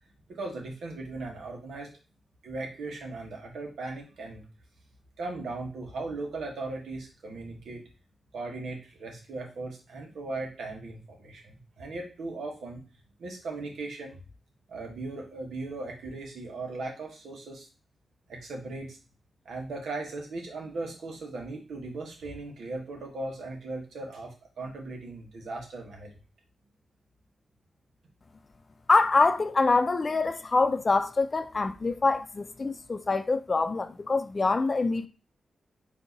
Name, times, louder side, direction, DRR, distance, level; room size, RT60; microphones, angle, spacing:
voice 1, 0.3-1.9 2.4-4.4 5.2-7.8 8.3-12.8 13.2-14.2 14.7-17.7 18.3-19.0 19.4-26.2, right 2 dB, 85° right, 1.3 m, -38 dB
voice 2, 28.9-35.1, left 3 dB, 45° left, 0.5 m, -25 dB
4.6 x 2.8 x 4.0 m
cardioid pair, 50°, 0 cm